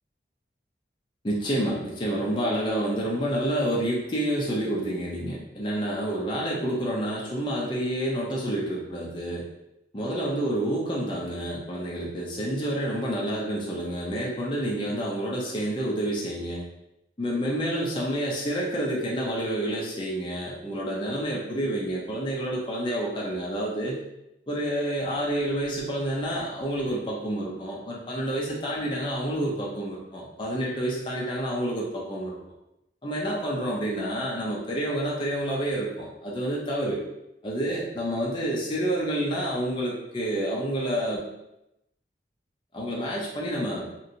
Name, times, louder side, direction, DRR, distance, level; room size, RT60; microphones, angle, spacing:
voice 1, 1.2-9.4 9.9-16.6 17.2-24.0 24.5-32.4 33.0-37.0 37.4-41.2 42.7-43.9, right 1 dB, 25° left, -4 dB, 0.5 m, -29 dB
2.9 x 2.5 x 2.6 m, 0.86 s
head